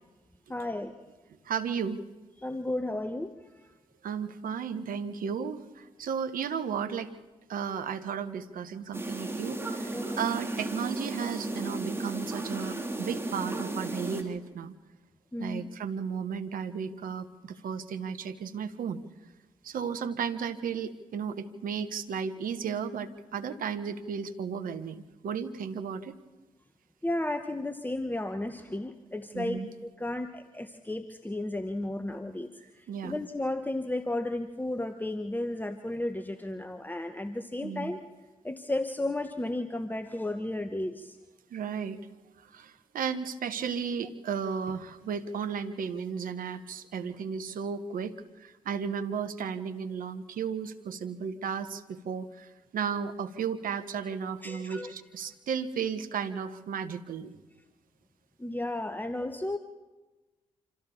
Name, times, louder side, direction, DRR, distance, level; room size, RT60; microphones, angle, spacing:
voice 1, 0.5-0.9 2.4-3.3 9.9-10.2 15.3-15.7 27.0-32.5 33.0-38.0 38.4-41.2 54.4-54.9 58.4-59.6, left 1 dB, 10° left, 8 dB, 1.3 m, -33 dB
voice 2, 1.4-2.0 4.0-7.1 7.5-14.7 15.4-19.0 19.6-26.1 29.3-29.7 32.6-33.1 37.6-37.9 41.5-42.0 42.5-57.4, right 6 dB, 65° right, 10 dB, 1.3 m, -34 dB
sound 1, 8.9-14.2, right 2 dB, 15° right, 3.7 m, -34 dB
26.5 x 14.5 x 7.2 m, 1.2 s
hypercardioid pair, 40°, 15 cm